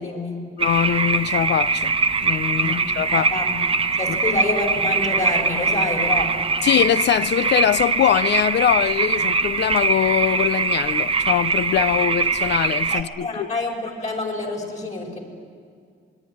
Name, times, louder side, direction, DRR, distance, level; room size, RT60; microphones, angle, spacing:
voice 1, 0.0-0.5 2.6-2.8 3.2-3.6 4.0-6.7 12.9-15.2, left 2 dB, 35° left, 5.5 m, -27 dB
voice 2, 0.6-1.9 2.2-3.3 4.1-4.2 6.6-13.5, left 10 dB, 65° left, 0.6 m, -22 dB
sound 1, 0.6-13.0, right 4 dB, 30° right, 1.1 m, -22 dB
26.0 x 22.0 x 9.8 m
cardioid pair, 125°, 19 cm